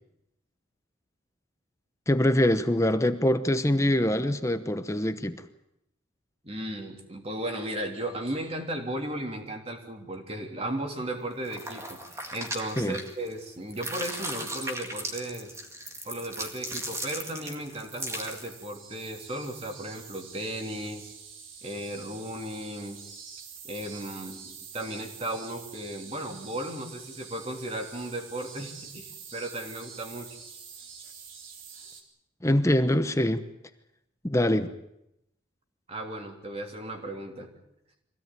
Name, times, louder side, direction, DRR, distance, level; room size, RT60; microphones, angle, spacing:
voice 1, 2.1-5.4 12.8-13.0 32.4-33.4 34.2-34.7, left 1 dB, 15° left, 10 dB, 0.9 m, -24 dB
voice 2, 6.4-12.0 12.3-15.6 16.0-21.1 21.6-23.0 23.6-30.3 35.9-37.5, right 1 dB, 30° right, 3 dB, 3.3 m, -35 dB
sound 1, 11.4-13.4 13.7-18.6, right 1 dB, 15° right, 2.0 m, -37 dB
sound 2, 17.3-32.0, right 6 dB, 80° right, 3.6 m, -47 dB
24.0 x 17.0 x 9.2 m, 0.83 s
head